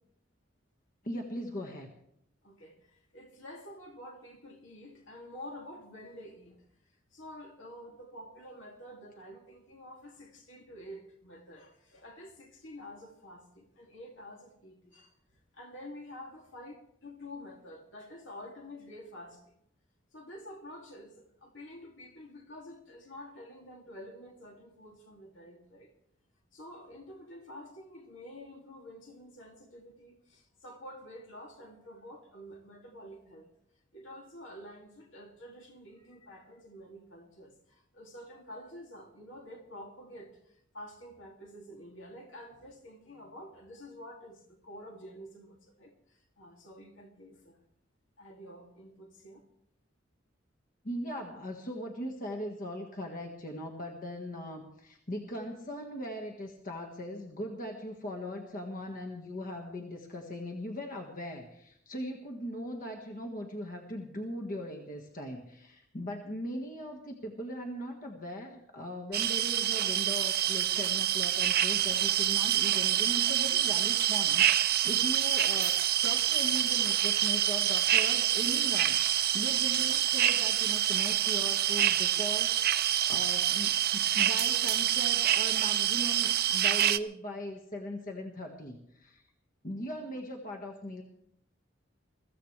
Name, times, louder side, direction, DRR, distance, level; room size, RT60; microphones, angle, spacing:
voice 1, 1.0-1.9 50.8-75.8 76.0-89.2 89.6-91.0, equal, 45° left, 2 dB, 1.7 m, -39 dB
voice 2, 2.4-6.6 7.1-15.1 15.5-19.6 20.1-25.9 26.5-33.5 33.9-47.6 48.2-49.4, left 1 dB, 75° left, 2 dB, 2.7 m, -49 dB
sound 1, 69.1-87.0, right 11 dB, 55° right, 0.6 m, -27 dB
23.0 x 15.0 x 3.3 m, 0.72 s
head